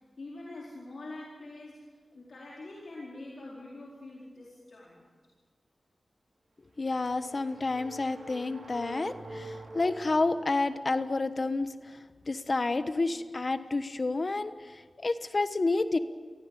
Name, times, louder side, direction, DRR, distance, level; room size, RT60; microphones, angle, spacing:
voice 1, 0.2-5.1, left 2 dB, 70° left, -4 dB, 4.4 m, -45 dB
sound 1, 6.7-11.1, right 2 dB, 70° right, 4.2 m, -46 dB
voice 2, 6.8-12.0 12.3-16.0, left 3 dB, 50° left, 11 dB, 1.2 m, -30 dB
23.5 x 15.5 x 8.5 m, 1.5 s
cardioid pair, 60°, 0 cm